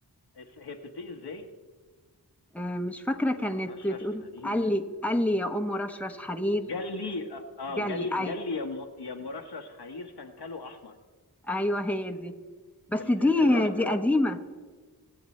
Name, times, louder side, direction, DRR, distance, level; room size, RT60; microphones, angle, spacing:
voice 1, 0.3-1.5 3.3-4.6 6.7-11.0 13.0-14.0, left 3 dB, 75° left, 5 dB, 1.4 m, -38 dB
voice 2, 2.5-6.7 7.8-8.3 11.5-12.3 12.9-14.4, left 1 dB, 5° left, 5 dB, 1.2 m, -27 dB
23.5 x 7.9 x 4.4 m, 1.4 s
cardioid pair, 45°, 40 cm